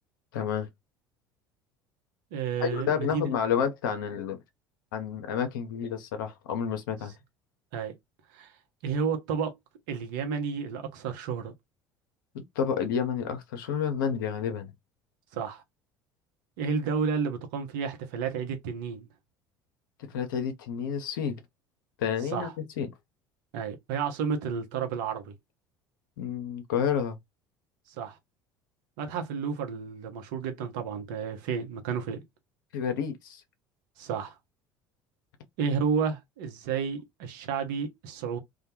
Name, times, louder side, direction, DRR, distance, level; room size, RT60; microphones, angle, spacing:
voice 1, 0.3-0.7 2.6-4.4 4.9-7.1 12.3-14.7 20.0-21.4 22.0-22.5 22.8-22.9 26.2-27.2 32.7-33.4, left 7 dB, 75° left, 0.6 m, -30 dB
voice 2, 2.3-3.2 7.7-8.0 8.3-8.5 8.8-9.5 9.9-11.5 15.3-15.6 16.6-19.1 22.3-22.5 23.5-25.3 28.0-28.2 29.0-32.2 34.0-34.4 35.6-38.4, right 6 dB, 70° right, 0.7 m, -31 dB
2.2 x 2.1 x 2.8 m
hypercardioid pair, 65°, 11 cm